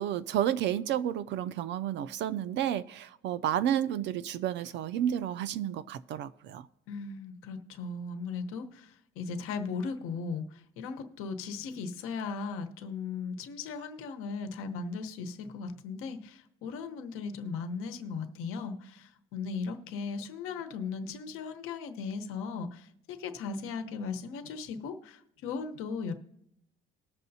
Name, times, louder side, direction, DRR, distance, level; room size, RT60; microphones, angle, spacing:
voice 1, 0.0-6.7, right 10 dB, 60° right, 13 dB, 0.4 m, -31 dB
voice 2, 6.9-26.1, left 5 dB, 85° left, 7 dB, 1.0 m, -37 dB
20.5 x 6.8 x 2.7 m, 0.78 s
cardioid pair, 160°, 21 cm